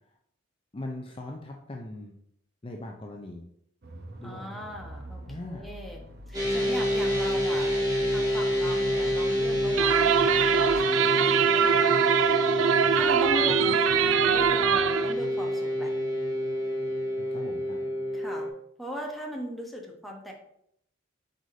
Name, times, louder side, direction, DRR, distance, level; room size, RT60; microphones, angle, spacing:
voice 1, 0.7-2.1 2.6-3.5 4.2-4.5 5.3-5.7 17.1-17.8, left 2 dB, 25° left, 1 dB, 0.6 m, -40 dB
sound 1, 3.8-10.8, right 1 dB, 55° right, 0.9 m, -44 dB
voice 2, 4.2-6.0 6.3-7.8 8.1-12.5 12.9-13.9 14.2-15.9 18.1-18.5 18.8-20.3, equal, ahead, -1 dB, 1.0 m, -39 dB
sound 2, 6.3-18.5, equal, 20° right, 2.1 m, -27 dB
sound 3, 9.8-15.1, right 9 dB, 70° right, 0.3 m, -23 dB
7.9 x 4.9 x 2.7 m, 0.72 s
head